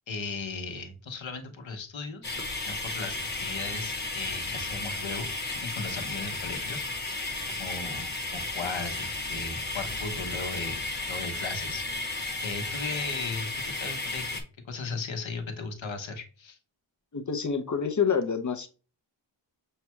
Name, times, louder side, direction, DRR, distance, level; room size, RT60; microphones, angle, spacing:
voice 1, 0.1-7.2 7.6-12.2 12.4-16.6, left 4 dB, 70° left, 5 dB, 1.1 m, -37 dB
sound 1, 2.2-14.4, left 2 dB, 20° left, 1.1 m, -34 dB
voice 2, 17.1-18.7, left 6 dB, 40° left, 7 dB, 0.7 m, -27 dB
6.6 x 2.3 x 3.0 m, 0.35 s
wide cardioid pair, 115°, 48 cm